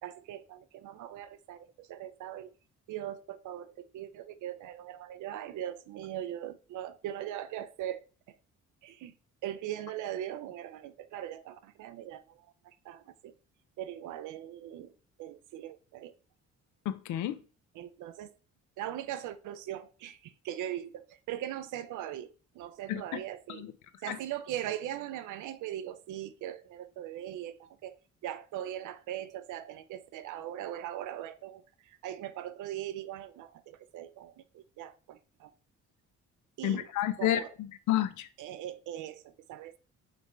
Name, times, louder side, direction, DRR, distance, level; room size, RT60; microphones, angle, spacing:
voice 1, 0.0-2.5 2.9-8.4 8.8-9.1 9.4-13.3 13.8-14.9 15.2-16.1 17.7-18.4 18.8-23.7 24.0-28.0 28.2-35.5 36.6-36.9 37.2-37.5 38.4-39.8, right 11 dB, 80° right, 0.5 m, -40 dB
voice 2, 16.9-17.4 22.9-23.0 23.5-23.7 24.1-24.2 36.6-37.4 37.9-38.3, left 12 dB, 80° left, 0.5 m, -29 dB
5.2 x 3.2 x 3.1 m
cardioid pair, 90°, 30 cm